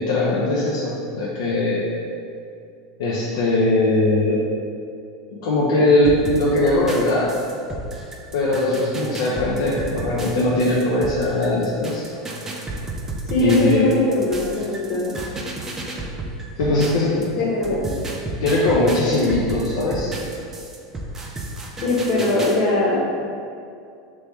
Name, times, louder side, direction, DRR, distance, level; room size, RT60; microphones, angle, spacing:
voice 1, 0.0-1.8 3.0-4.4 5.4-7.3 8.3-12.0 13.4-13.9 16.6-17.4 17.7-17.8 18.4-20.1, left 2 dB, 80° left, -5 dB, 0.5 m, -20 dB
sound 1, 6.0-17.3 17.6-22.6, right 2 dB, 20° right, 0.4 m, -32 dB
voice 2, 13.3-15.1 17.4-18.0 21.8-23.0, left 2 dB, 55° left, -4 dB, 1.0 m, -21 dB
3.0 x 3.0 x 3.4 m, 2.4 s
supercardioid pair, 125°, 2 cm